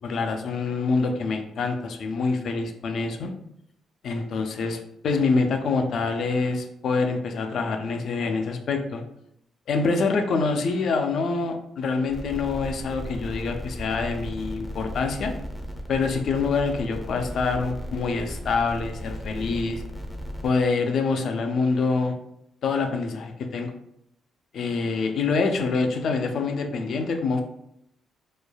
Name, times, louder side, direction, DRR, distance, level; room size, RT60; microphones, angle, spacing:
voice 1, 0.0-3.3 4.0-9.0 9.7-15.3 15.9-19.8 20.4-22.1 22.6-23.7 24.5-27.4, left 4 dB, 65° left, 5 dB, 0.4 m, -26 dB
sound 1, 12.1-20.5, equal, 5° left, 0.5 m, -36 dB
3.1 x 2.1 x 2.2 m, 0.75 s
cardioid pair, 90°, 0 cm